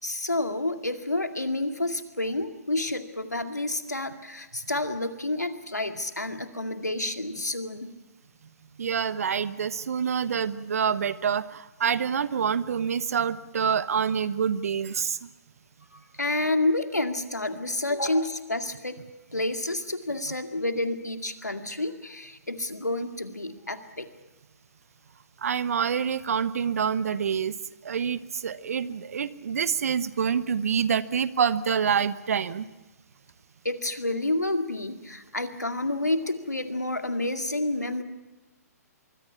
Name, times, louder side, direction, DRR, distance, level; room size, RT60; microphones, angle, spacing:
voice 1, 0.0-7.9 15.9-19.0 19.3-24.1 33.6-38.0, left 2 dB, 90° left, 7 dB, 2.2 m, -29 dB
voice 2, 8.8-15.3 25.4-27.5 27.8-32.7, right 7 dB, 60° right, 15 dB, 1.1 m, -27 dB
25.5 x 23.0 x 5.9 m, 1.1 s
figure-of-eight pair, 125°, 9 cm